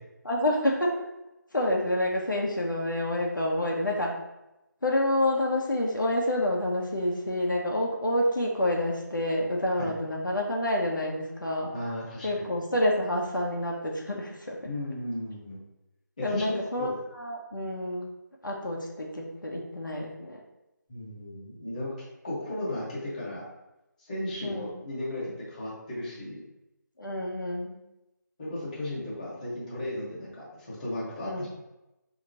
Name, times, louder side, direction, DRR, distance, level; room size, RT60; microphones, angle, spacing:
voice 1, 0.2-1.0 1.5-4.2 4.8-11.7 12.2-14.6 16.2-18.1 18.4-20.4 24.4-24.7 27.0-27.8 31.2-31.5, left 1 dB, 75° left, -1 dB, 0.8 m, -28 dB
voice 2, 11.7-12.4 14.6-15.6 16.2-16.9 20.9-23.4 24.0-26.4 28.4-31.5, left 1 dB, 25° left, -7 dB, 1.0 m, -35 dB
4.6 x 2.8 x 2.7 m, 0.94 s
figure-of-eight pair, 160°, 10 cm